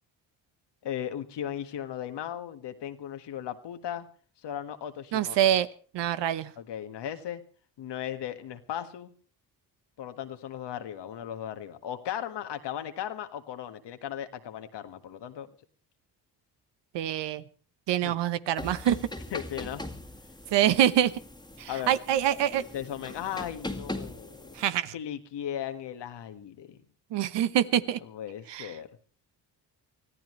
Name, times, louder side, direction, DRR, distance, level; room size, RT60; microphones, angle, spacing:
voice 1, 0.8-4.1 4.4-5.5 6.6-7.4 7.8-9.1 10.0-15.5 18.0-18.2 19.3-19.8 21.7-22.0 22.7-24.5 24.9-26.8 28.0-28.9, left 10 dB, 70° left, 8 dB, 1.8 m, -37 dB
voice 2, 5.1-5.7 5.9-6.5 16.9-17.4 17.9-19.0 20.5-21.1 21.6-22.6 24.6-24.9 27.1-28.0 28.5-28.7, right 11 dB, 75° right, 14 dB, 1.1 m, -25 dB
sound 1, 18.6-24.6, left 1 dB, 10° left, 2.1 m, -41 dB
24.5 x 15.0 x 3.2 m, 0.40 s
supercardioid pair, 60°, 43 cm